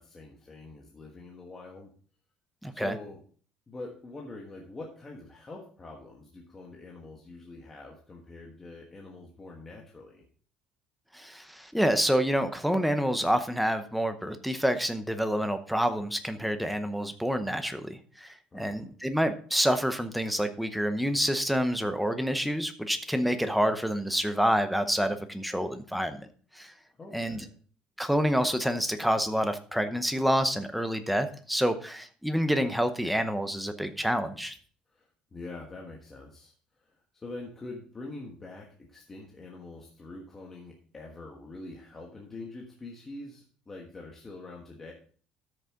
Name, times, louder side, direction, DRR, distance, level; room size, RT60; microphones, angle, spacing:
voice 1, 0.0-1.9 2.7-3.2 3.7-10.2 18.5-18.8 27.0-27.5 34.9-36.5 36.9-44.9, left 2 dB, 15° left, -1 dB, 1.3 m, -44 dB
voice 2, 2.6-3.0 11.1-26.3 26.5-26.7 27.1-27.4 28.0-34.5, equal, ahead, 8 dB, 0.8 m, -28 dB
13.0 x 6.6 x 3.6 m, 0.43 s
cardioid pair, 175°, 2 cm